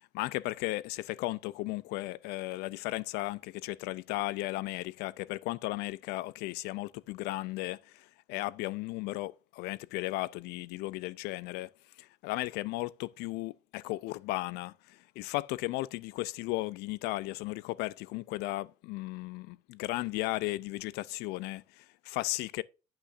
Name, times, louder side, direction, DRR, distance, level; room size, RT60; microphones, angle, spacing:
voice 1, 0.1-11.7 12.0-22.6, left 19 dB, 80° left, 0.4 m, -35 dB
8.6 x 7.9 x 2.5 m
cardioid pair, 145°, 17 cm